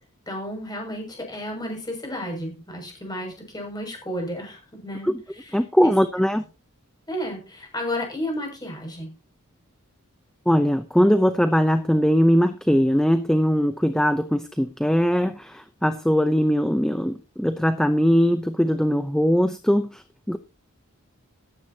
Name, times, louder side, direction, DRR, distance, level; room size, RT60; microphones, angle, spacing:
voice 1, 0.3-5.9 7.1-9.1, equal, 20° left, 2 dB, 6.7 m, -32 dB
voice 2, 5.5-6.4 10.5-20.4, equal, 5° left, 9 dB, 0.7 m, -21 dB
14.5 x 13.0 x 2.9 m, 0.30 s
head